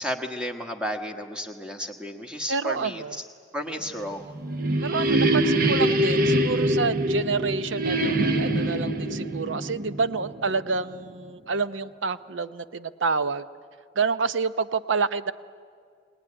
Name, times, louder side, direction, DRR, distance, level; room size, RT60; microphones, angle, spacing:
voice 1, 0.0-3.2 3.5-4.3, equal, 5° right, 4 dB, 1.4 m, -33 dB
voice 2, 2.5-3.2 4.8-13.4 14.0-15.3, right 4 dB, 80° right, 12 dB, 0.7 m, -28 dB
sound 1, 4.1-10.8, right 1 dB, 50° right, 1.0 m, -24 dB
22.0 x 19.0 x 9.9 m, 2.1 s
head